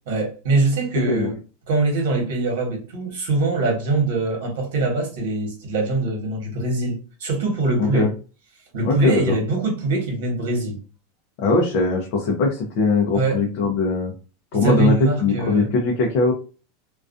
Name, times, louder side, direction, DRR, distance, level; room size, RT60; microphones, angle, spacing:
voice 1, 0.1-1.3 1.7-8.1 8.7-10.8 13.1-13.4 14.5-15.7, right 3 dB, 65° right, 1.1 m, -23 dB
voice 2, 7.8-8.1 8.8-9.4 11.4-14.1 14.5-16.3, left 3 dB, 40° left, 0.5 m, -21 dB
2.4 x 2.2 x 2.5 m
supercardioid pair, 180°, 0 cm